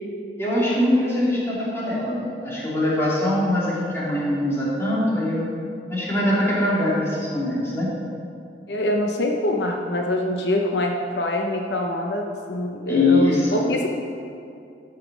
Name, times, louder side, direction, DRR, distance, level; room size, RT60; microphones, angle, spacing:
voice 1, 0.4-5.5 5.9-7.9 12.9-13.6, left 1 dB, 15° left, -7 dB, 2.8 m, -22 dB
voice 2, 8.7-13.9, left 1 dB, 70° left, 2 dB, 0.8 m, -24 dB
13.0 x 5.8 x 6.2 m, 2.5 s
head